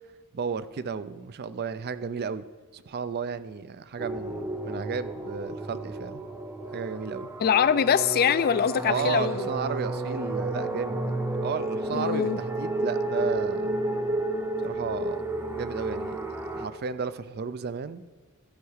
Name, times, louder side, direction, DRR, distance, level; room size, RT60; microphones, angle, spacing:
voice 1, 0.3-2.4 2.7-6.2 6.7-7.3 8.8-13.8 14.6-15.2 15.5-16.2 16.5-18.0, right 6 dB, 45° right, 14 dB, 0.4 m, -33 dB
sound 1, 4.0-16.7, right 2 dB, 10° right, 0.7 m, -31 dB
voice 2, 7.4-9.5 11.9-12.4, left 7 dB, 45° left, 15 dB, 0.3 m, -23 dB
13.5 x 4.7 x 6.4 m, 1.5 s
head